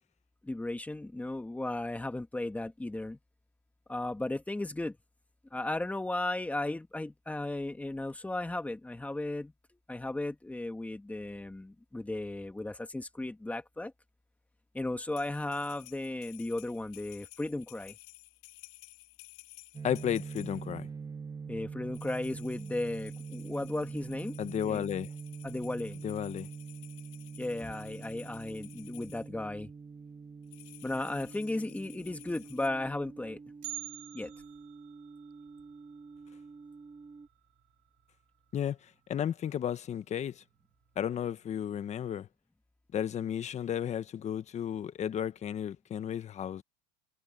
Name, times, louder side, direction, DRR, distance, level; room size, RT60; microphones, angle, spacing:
voice 1, 0.4-3.2 3.9-5.0 5.5-9.5 9.9-13.9 14.7-18.0 21.5-24.3 24.6-24.8 25.4-26.0 27.4-29.7 30.8-33.4 34.1-34.3, left 2 dB, 5° left, 1.9 m, -35 dB
sound 1, 15.1-20.8 21.9-29.3 30.4-32.7, left 29 dB, 80° left, 5.2 m, -54 dB
sound 2, 19.7-37.3, right 5 dB, 20° right, 1.4 m, -45 dB
voice 2, 19.8-20.9 24.4-25.1 26.0-26.5 38.5-38.8 39.1-40.4 41.0-42.3 42.9-46.6, left 9 dB, 35° left, 1.3 m, -33 dB
Bell, 33.6-37.7 38.0-38.1 38.6-38.7 39.5-39.6 40.3-40.6 41.0-41.1, right 27 dB, 70° right, 7.9 m, -48 dB
supercardioid pair, 115°, 20 cm